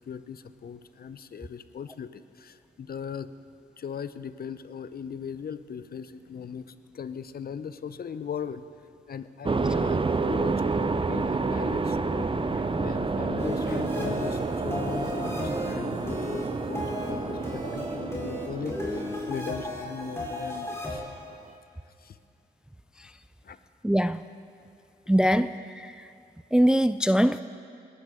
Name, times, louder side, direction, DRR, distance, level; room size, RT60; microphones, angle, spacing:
voice 1, 0.1-3.3 3.8-8.6 9.1-21.1 22.0-22.2 23.4-23.6, left 7 dB, 50° left, 13 dB, 0.6 m, -39 dB
sound 1, 9.4-20.9, right 4 dB, 25° right, 0.7 m, -29 dB
sound 2, 13.4-21.0, left 2 dB, 15° left, 4.1 m, -35 dB
voice 2, 23.8-24.2 25.1-25.9 26.5-27.4, equal, 5° right, 13 dB, 0.3 m, -22 dB
21.0 x 12.5 x 3.7 m, 2.5 s
hypercardioid pair, 40°, 21 cm